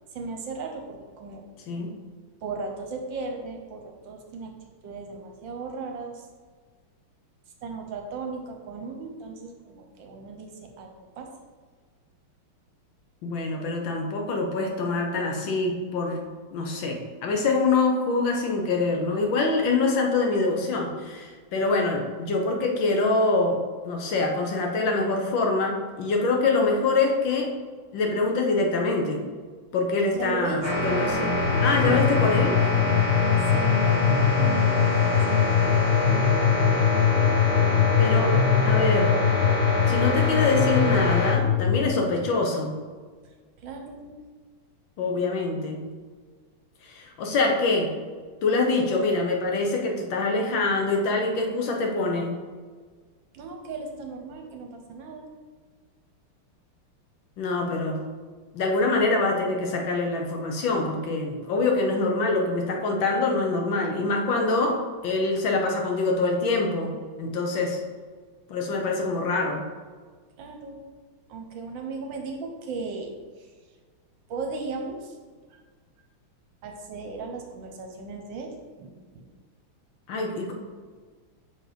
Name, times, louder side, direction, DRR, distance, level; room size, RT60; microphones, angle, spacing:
voice 1, 0.1-1.4 2.4-4.5 4.8-6.2 7.6-11.3 30.2-31.3 31.9-32.7 33.5-35.7 37.5-37.6 43.6-44.1 53.3-55.3 70.4-70.8 71.3-73.5 74.3-75.1 75.5-75.6 76.6-78.5 78.8-79.3, right 4 dB, 70° right, 3 dB, 1.3 m, -37 dB
voice 2, 13.2-16.2 16.5-23.6 23.8-27.5 27.9-29.2 29.7-31.3 31.6-32.6 38.0-39.1 39.9-42.7 45.0-45.8 46.8-47.9 48.4-52.3 57.4-58.0 58.5-66.9 67.2-67.8 68.5-69.6 80.1-80.5, left 3 dB, 65° left, 1 dB, 1.5 m, -25 dB
sound 1, 30.6-41.3, left 1 dB, 10° left, 1.2 m, -26 dB
sound 2, 31.4-41.9, left 9 dB, 85° left, 1.6 m, -22 dB
6.2 x 4.2 x 5.0 m, 1.5 s
omnidirectional pair, 2.4 m